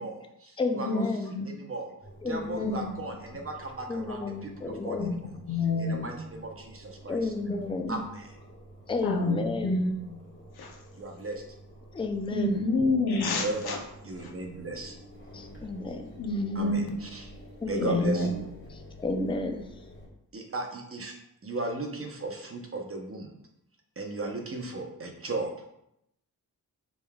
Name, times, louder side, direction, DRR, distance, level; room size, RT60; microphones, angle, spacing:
voice 1, 0.0-1.0 1.4-1.9 2.2-5.0 5.8-7.3 7.9-8.3 10.9-11.4 13.1-14.9 16.5-17.3 17.7-18.5 20.3-21.1 21.4-23.3 24.0-25.5, right 3 dB, 35° right, 2 dB, 0.7 m, -36 dB
voice 2, 0.6-1.4 2.2-2.9 3.9-5.1 7.1-8.0 8.9-10.0 11.9-12.6 15.3-16.0 17.6-18.1 19.0-19.7, left 3 dB, 15° left, 5 dB, 0.4 m, -32 dB
Engine, 2.0-20.1, equal, 30° left, 1.5 m, -50 dB
voice 3, 5.0-6.1 7.5-7.9 9.0-10.2 10.6-10.8 12.3-13.8 14.2-14.3 16.2-17.0 17.8-18.3, left 2 dB, 85° left, 2 dB, 0.8 m, -28 dB
5.2 x 3.4 x 2.3 m, 0.79 s
wide cardioid pair, 95°, 37 cm